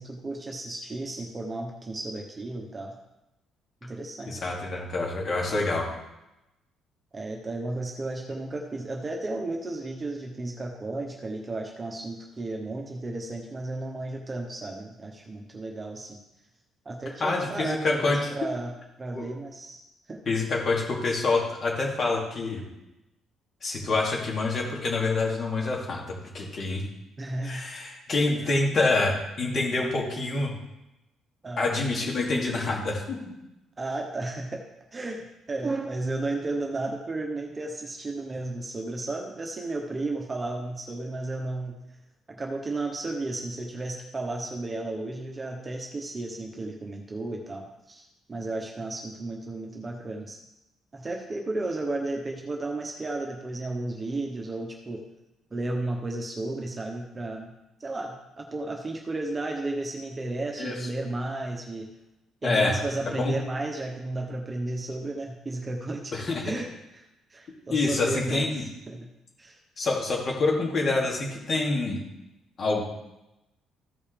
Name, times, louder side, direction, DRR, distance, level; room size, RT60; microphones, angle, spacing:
voice 1, 0.0-2.9 3.8-4.5 7.1-16.2 16.8-18.7 19.0-19.8 20.1-20.2 27.2-27.6 28.4-28.5 31.4-31.7 33.8-34.6 34.9-41.7 42.3-50.4 50.9-55.0 55.5-57.5 57.8-61.9 62.4-66.1 66.4-66.7 67.3-68.5 68.9-69.1 69.4-69.6, right 2 dB, 20° right, 1 dB, 1.1 m, -33 dB
voice 2, 4.3-5.9 17.2-18.2 19.1-19.3 20.3-22.6 23.6-26.8 27.4-30.5 31.6-33.2 60.6-60.9 62.4-62.7 63.1-63.3 66.1-66.5 67.7-68.6 69.8-72.0 72.6-72.8, left 3 dB, 40° left, -2 dB, 2.5 m, -26 dB
14.5 x 5.4 x 3.4 m, 0.93 s
cardioid pair, 150°, 0 cm